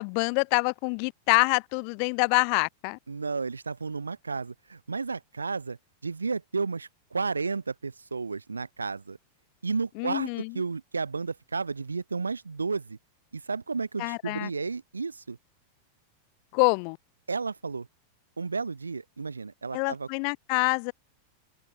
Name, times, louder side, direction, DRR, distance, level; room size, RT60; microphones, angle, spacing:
voice 1, 0.0-3.0 10.0-10.6 14.0-14.5 16.5-17.0 19.7-20.9, left 40 dB or more, 45° left, 1.0 m, -26 dB
voice 2, 3.1-5.8 6.0-9.2 9.6-10.3 10.5-13.0 13.3-15.4 17.3-17.9 18.4-20.1, right 4 dB, 75° right, 4.1 m, -32 dB
figure-of-eight pair, 90°, 0 cm